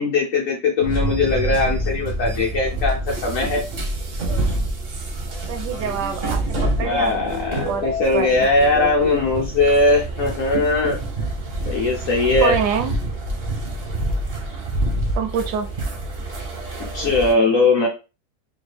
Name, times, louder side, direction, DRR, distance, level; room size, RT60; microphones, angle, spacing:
voice 1, 0.0-3.6 6.8-11.0 11.7-12.6 16.9-17.9, left 3 dB, 65° left, 0.8 m, -20 dB
sound 1, 0.8-17.3, right 1 dB, 55° right, 0.6 m, -27 dB
voice 2, 5.5-7.8 8.1-8.5 12.4-13.0 15.1-15.7, right 7 dB, 75° right, 1.1 m, -26 dB
3.5 x 2.2 x 3.3 m
omnidirectional pair, 1.9 m